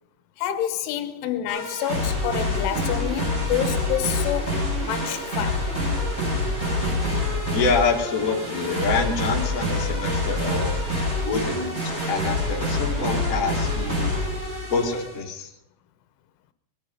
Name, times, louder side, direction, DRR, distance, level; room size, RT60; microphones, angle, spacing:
voice 1, 0.4-5.7, left 12 dB, 80° left, 3.4 m, -28 dB
sound 1, 1.5-15.2, left 1 dB, 15° right, 6.9 m, -26 dB
voice 2, 7.5-11.8 12.1-14.2 14.7-15.5, left 4 dB, 50° left, 1.0 m, -26 dB
21.0 x 11.0 x 5.4 m
omnidirectional pair, 5.7 m